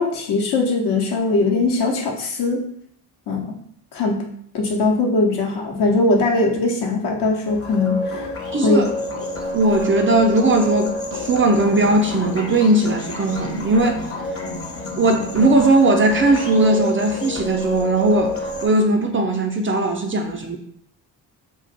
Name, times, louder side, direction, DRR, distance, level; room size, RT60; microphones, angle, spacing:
voice 1, 0.0-2.7 3.3-3.6 3.9-4.3 4.5-8.3 8.6-8.9, left 3 dB, 55° left, 0 dB, 0.9 m, -20 dB
sound 1, 7.5-18.7, left 1 dB, 30° left, 0.9 m, -28 dB
voice 2, 8.5-8.9 9.5-14.0 15.0-18.3 18.6-20.6, right 2 dB, 25° right, 3 dB, 0.5 m, -18 dB
2.4 x 2.2 x 3.9 m, 0.66 s
hypercardioid pair, 40°, 47 cm